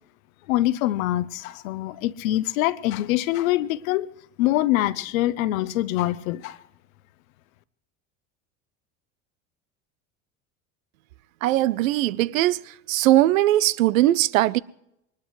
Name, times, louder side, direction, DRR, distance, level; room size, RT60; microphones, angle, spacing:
voice 1, 0.5-4.1 4.4-6.6, left 15 dB, 80° left, 0.8 m, -24 dB
voice 2, 11.4-12.6 12.9-14.6, right 14 dB, 90° right, 0.6 m, -20 dB
22.5 x 20.0 x 3.1 m
supercardioid pair, 95°, 40 cm